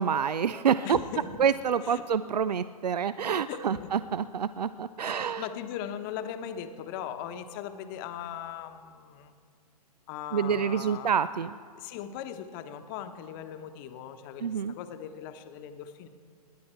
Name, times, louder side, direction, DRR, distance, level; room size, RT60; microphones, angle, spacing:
voice 1, 0.0-1.0 1.4-5.4 10.3-11.5 14.4-14.7, right 7 dB, 80° right, 15 dB, 0.4 m, -27 dB
voice 2, 0.8-1.3 1.8-2.0 3.5-3.9 5.0-9.3 10.1-11.1 11.7-16.1, left 9 dB, 30° left, 8 dB, 1.0 m, -39 dB
26.0 x 10.5 x 4.5 m, 2.2 s
figure-of-eight pair, 125°, 20 cm